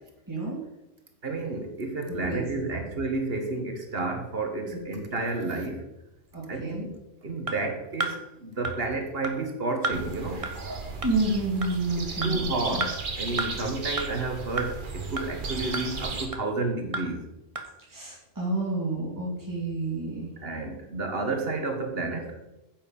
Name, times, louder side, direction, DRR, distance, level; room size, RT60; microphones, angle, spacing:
voice 1, 0.3-0.6 2.1-2.6 4.6-4.9 6.3-6.9 11.0-12.8 17.9-20.3, right 2 dB, 20° right, -6 dB, 2.6 m, -30 dB
voice 2, 1.2-5.9 6.5-7.0 7.2-10.5 12.2-17.2 20.4-22.4, right 3 dB, 70° right, 4 dB, 1.7 m, -31 dB
sound 1, 7.5-7.6 8.0-8.1 8.6-8.7 9.2-9.3 9.8-10.0 10.4-10.5 11.0-11.1 11.6-11.7 12.2-12.3 12.8-12.9 13.4-13.5 14.0-14.1 14.6-14.7 15.2-15.3 15.7-15.8 16.3-16.4 16.9-17.0 17.6-17.7, right 3 dB, 35° right, 1.2 m, -30 dB
sound 2, 9.9-16.3, right 4 dB, 55° right, 1.3 m, -35 dB
9.4 x 7.7 x 5.4 m, 0.94 s
omnidirectional pair, 1.1 m